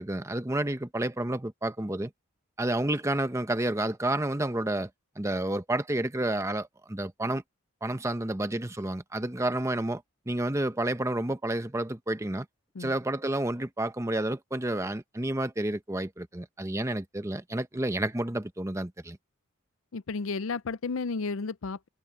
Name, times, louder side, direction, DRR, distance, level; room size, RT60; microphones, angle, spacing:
voice 1, 0.0-2.1 2.6-4.9 5.2-7.4 7.8-12.5 12.8-19.2, right 1 dB, 15° right, 0.8 m, -30 dB
voice 2, 19.9-21.9, left 4 dB, 70° left, 0.5 m, -32 dB
head